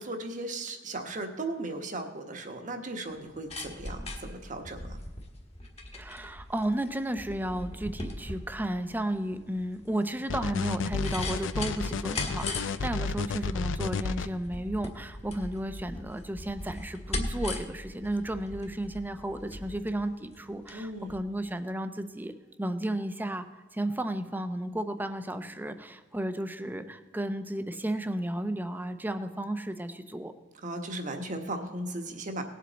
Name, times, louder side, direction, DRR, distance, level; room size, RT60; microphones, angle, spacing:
voice 1, 0.0-5.0 20.7-21.1 30.6-32.4, right 2 dB, 45° right, 5 dB, 1.2 m, -36 dB
sound 1, 3.1-20.8 21.1-21.2, left 2 dB, 35° left, 1.5 m, -39 dB
voice 2, 5.9-30.3, right 1 dB, 10° right, 10 dB, 0.6 m, -33 dB
sound 2, 10.3-14.3, left 5 dB, 90° left, 0.5 m, -31 dB
18.5 x 7.6 x 4.0 m, 1.4 s
head